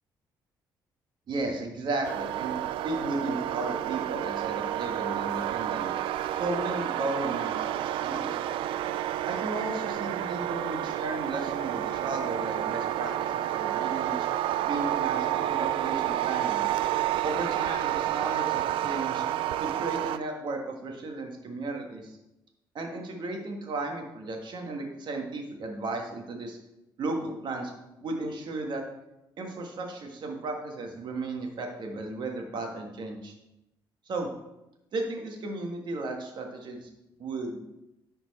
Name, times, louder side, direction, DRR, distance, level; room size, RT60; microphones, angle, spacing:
voice 1, 1.3-5.9 6.3-8.4 9.3-14.1 14.6-16.7 17.2-19.2 19.6-22.2 22.7-26.6 27.0-27.7 28.0-28.8 29.4-33.3 34.0-34.3 34.9-36.9 37.2-37.6, right 2 dB, 60° right, 2 dB, 1.6 m, -34 dB
sound 1, 2.0-20.2, right 12 dB, 85° right, 0.4 m, -30 dB
10.5 x 4.5 x 4.2 m, 0.92 s
cardioid pair, 90°, 9 cm